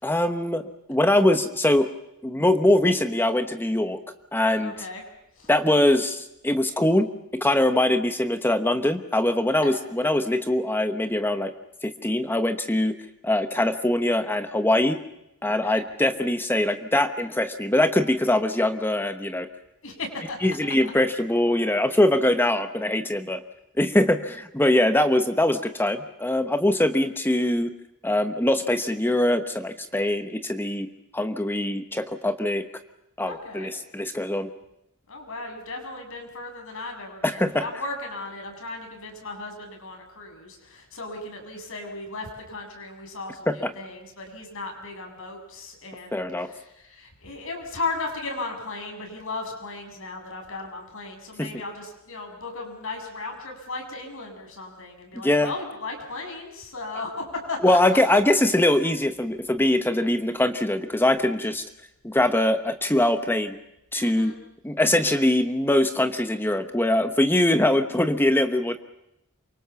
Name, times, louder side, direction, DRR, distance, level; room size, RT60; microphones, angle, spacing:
voice 1, 0.0-1.9 2.2-4.0 4.3-4.7 5.5-7.1 7.4-11.5 11.8-12.9 13.2-15.0 15.4-19.5 20.4-23.4 23.8-27.7 28.0-30.9 31.1-32.6 33.2-34.5 37.2-37.6 43.5-43.7 46.1-46.5 51.4-51.5 55.2-55.5 57.6-61.6 62.0-63.6 63.9-64.3 64.6-68.8, left 1 dB, 10° left, 8 dB, 1.1 m, -22 dB
voice 2, 4.6-5.0 5.4-5.5 9.6-9.8 15.5-15.8 19.8-20.4 20.8-20.9 33.2-33.7 35.1-58.2 64.0-64.4, left 3 dB, 65° left, 3 dB, 7.5 m, -36 dB
28.5 x 24.5 x 7.1 m, 0.85 s
head